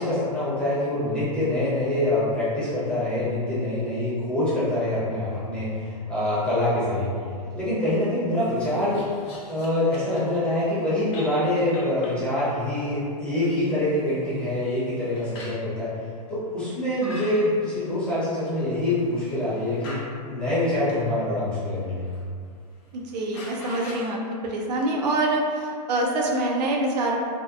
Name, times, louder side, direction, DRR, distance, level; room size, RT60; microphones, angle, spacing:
voice 1, 0.0-7.1 7.5-9.0 9.5-15.9 16.3-22.0, left 1 dB, 5° left, -13 dB, 0.7 m, -25 dB
sound 1, 8.4-10.3 10.7-10.8 11.1-12.2 13.1-15.7 16.6-20.1 20.8-21.1 21.6-22.2 22.5-22.6 22.9-24.1, left 1 dB, 45° left, 0.6 m, -44 dB
voice 2, 22.9-27.2, right 2 dB, 80° right, -1 dB, 0.5 m, -25 dB
2.7 x 2.1 x 2.3 m, 2.2 s
hypercardioid pair, 155°, 21 cm